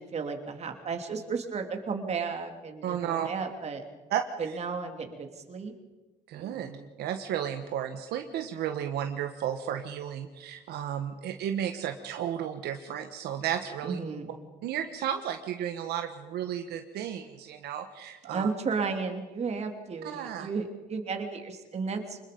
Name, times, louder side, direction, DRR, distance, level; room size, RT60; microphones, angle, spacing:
voice 1, 0.0-3.8 4.4-5.7 6.3-6.9 13.8-14.3 18.3-22.2, right 5 dB, 40° right, 5 dB, 3.1 m, -34 dB
voice 2, 2.8-3.3 4.1-4.6 6.3-6.7 7.0-14.0 14.6-18.5 20.0-20.5, right 9 dB, 75° right, 6 dB, 1.4 m, -33 dB
25.5 x 21.0 x 5.3 m, 1.2 s
cardioid pair, 110°, 17 cm